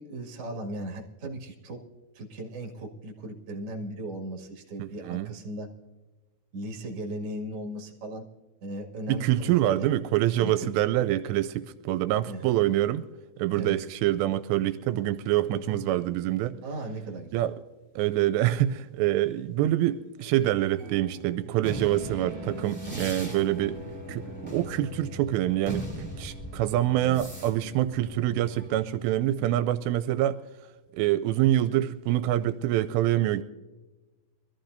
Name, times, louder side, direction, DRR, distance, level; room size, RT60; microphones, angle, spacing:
voice 1, 0.0-1.8 2.1-5.7 6.5-8.2 8.6-9.9 10.4-11.0 12.3-12.6 13.5-13.8 15.5-15.8 16.6-17.4 22.8-23.1 27.0-27.2 29.4-29.5, right 1 dB, 45° right, 2.4 m, -37 dB
voice 2, 4.8-5.3 9.1-13.0 13.4-16.5 17.3-17.5 18.0-23.8 24.1-30.4 30.9-33.4, right 13 dB, 85° right, 2.7 m, -26 dB
sound 1, 17.8-17.9 18.7-18.9 19.3-19.4 19.7-29.4, right 5 dB, 15° right, 5.9 m, -47 dB
sound 2, 21.6-29.2, equal, 5° left, 2.1 m, -40 dB
23.5 x 14.5 x 2.6 m
omnidirectional pair, 4.9 m